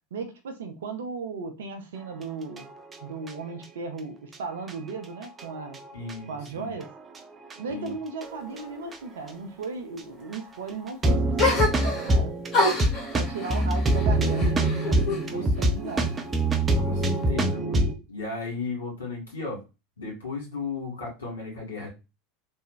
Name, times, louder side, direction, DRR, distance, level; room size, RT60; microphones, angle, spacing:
voice 1, 0.1-2.7 3.0-5.8 6.2-6.9 7.6-12.3 13.1-14.7 15.0-16.1, right 4 dB, 70° right, 7 dB, 0.6 m, -36 dB
sound 1, 2.6-3.3 3.6-3.7 4.3-4.4 4.7-4.8 5.2-6.1 6.8-7.2 7.4-7.5 8.2-8.6 8.9-9.0 9.3-9.4 10.0-10.1 10.3-10.4 10.9-17.9, right 1 dB, 20° right, 0.6 m, -25 dB
voice 2, 5.9-6.7 7.7-7.9 15.3-15.4 16.8-19.6 20.0-21.9, left 4 dB, 75° left, -3 dB, 1.9 m, -35 dB
sound 2, 11.4-12.2 12.5-15.2 15.6-16.4, left 2 dB, 40° left, 1.4 m, -27 dB
3.4 x 2.2 x 3.1 m, 0.27 s
figure-of-eight pair, 80°, 0 cm